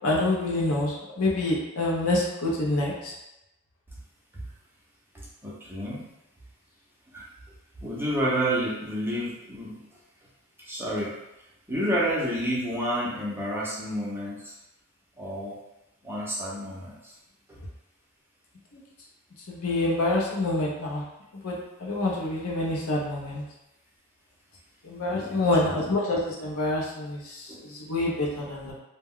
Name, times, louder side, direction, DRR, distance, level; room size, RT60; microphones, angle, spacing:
voice 1, 0.0-3.1 19.5-21.0 21.4-23.4 24.8-28.7, left 2 dB, 80° left, -3 dB, 0.7 m, -27 dB
voice 2, 5.1-6.0 7.1-7.3 7.8-9.8 10.6-11.2 11.7-14.5 15.2-15.6 16.0-17.1 17.5-17.6 25.1-25.9 27.5-27.6, equal, 10° right, -5 dB, 0.5 m, -30 dB
2.2 x 2.1 x 3.5 m, 0.93 s
head